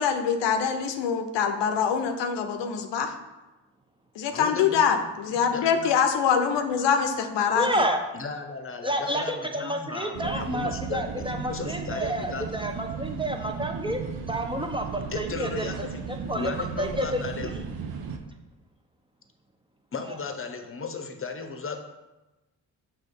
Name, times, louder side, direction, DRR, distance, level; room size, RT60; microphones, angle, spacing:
voice 1, 0.0-3.1 4.2-7.9, left 7 dB, 90° left, 7 dB, 0.7 m, -24 dB
voice 2, 4.3-5.0 5.4-5.9 8.1-12.6 15.1-16.0 16.3-17.6 19.9-21.8, left 4 dB, 30° left, 6 dB, 0.9 m, -35 dB
voice 3, 7.5-8.0 8.8-14.0 14.3-15.7 16.3-17.5, right 1 dB, 10° right, 3 dB, 0.7 m, -29 dB
sound 1, 10.1-18.2, right 6 dB, 60° right, 0.8 m, -35 dB
6.3 x 3.1 x 5.4 m, 1.1 s
cardioid pair, 75°, 41 cm